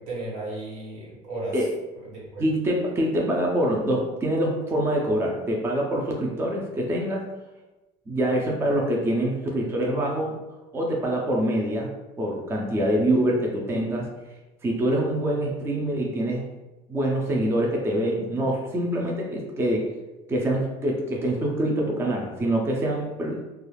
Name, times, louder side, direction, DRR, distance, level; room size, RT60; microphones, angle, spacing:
voice 1, 0.0-1.6 1.9-2.4, right 2 dB, 85° right, -5 dB, 1.3 m, -35 dB
voice 2, 2.4-7.2 8.1-10.4 10.7-11.9 12.2-14.1 14.6-16.5 16.9-19.9 20.3-23.4, right 1 dB, 15° right, -1 dB, 0.4 m, -25 dB
2.4 x 2.3 x 3.2 m, 1.1 s
cardioid pair, 140°, 16 cm